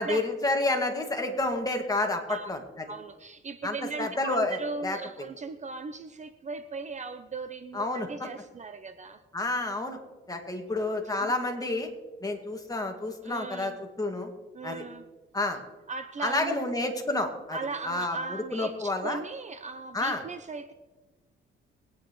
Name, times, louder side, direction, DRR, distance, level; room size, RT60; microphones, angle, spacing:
voice 1, 0.0-2.6 3.6-5.0 7.7-8.1 9.3-10.0 10.3-11.9 12.2-14.3 14.6-14.8 15.3-15.6 16.2-17.6 17.8-19.2 19.9-20.2, left 2 dB, 20° left, 3 dB, 2.1 m, -29 dB
voice 2, 2.9-9.2 11.2-11.3 13.2-13.8 14.5-15.1 15.9-16.7 17.5-20.7, right 4 dB, 35° right, 10 dB, 0.7 m, -38 dB
23.0 x 9.6 x 3.2 m, 1.2 s
cardioid pair, 90°, 20 cm